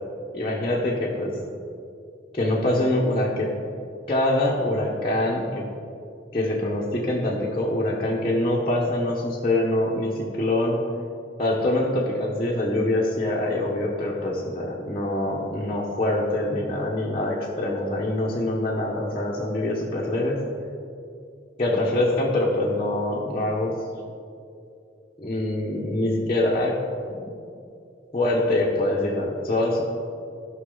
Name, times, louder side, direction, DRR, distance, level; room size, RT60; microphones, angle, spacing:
voice 1, 0.3-1.4 2.3-3.5 4.1-5.6 6.3-10.8 11.4-20.4 21.6-23.7 25.2-26.7 28.1-29.8, left 1 dB, 30° left, -6 dB, 1.1 m, -24 dB
15.0 x 6.1 x 3.9 m, 2.5 s
head